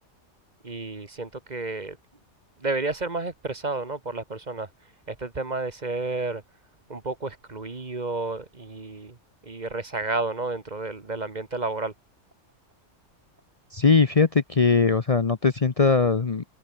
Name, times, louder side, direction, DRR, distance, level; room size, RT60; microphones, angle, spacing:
voice 1, 0.6-2.0 2.6-4.7 5.1-6.4 6.9-9.2 9.4-11.9, right 3 dB, 35° right, 1.8 m, -31 dB
voice 2, 13.7-16.4, left 4 dB, 35° left, 0.9 m, -20 dB
open air
omnidirectional pair, 1.2 m